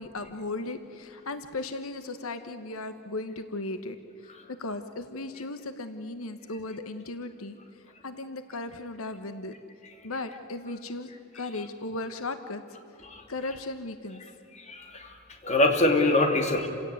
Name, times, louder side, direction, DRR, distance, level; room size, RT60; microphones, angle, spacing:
voice 1, 0.0-9.5 10.0-12.6 13.3-14.2, left 2 dB, 85° left, 9 dB, 1.2 m, -36 dB
voice 2, 14.6-15.2 15.4-16.7, left 2 dB, 35° left, 3 dB, 2.8 m, -24 dB
28.5 x 17.0 x 9.5 m, 2.6 s
head